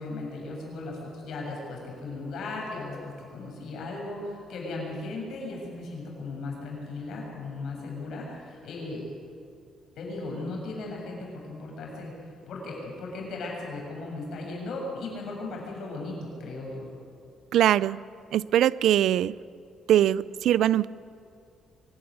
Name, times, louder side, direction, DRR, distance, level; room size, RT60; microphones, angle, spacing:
voice 1, 0.0-9.0 10.0-12.1 12.5-16.9, left 2 dB, 75° left, -1 dB, 7.2 m, -36 dB
voice 2, 17.5-18.0 18.3-19.3 19.9-20.9, right 11 dB, 80° right, 20 dB, 0.4 m, -22 dB
24.5 x 12.5 x 9.8 m, 2.4 s
cardioid pair, 90°, 0 cm